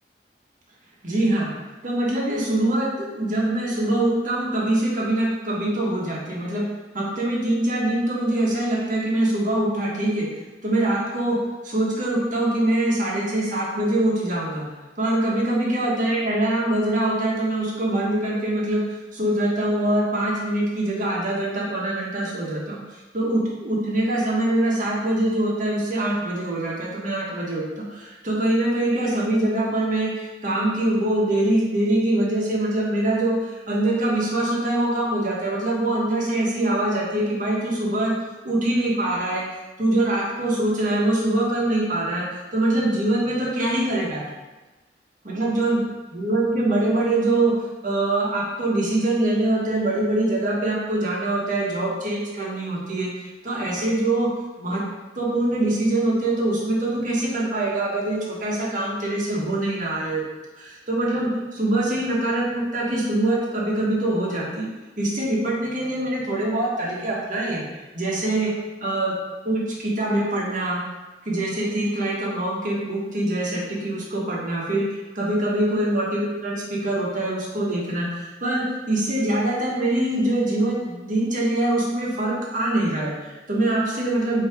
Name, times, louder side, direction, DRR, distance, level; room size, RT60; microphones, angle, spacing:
voice 1, 1.0-1.5 1.8-6.7 6.9-10.3 10.6-14.6 15.0-38.1 38.4-39.4 39.8-42.3 42.5-44.2 45.2-45.8 46.1-47.5 47.8-54.3 54.6-54.8 55.1-60.2 60.5-64.7 65.0-67.6 67.9-68.5 68.8-69.1 69.4-70.8 71.2-74.9 75.1-84.5, right 1 dB, 50° right, -4 dB, 1.4 m, -23 dB
7.1 x 2.9 x 4.8 m, 1.2 s
head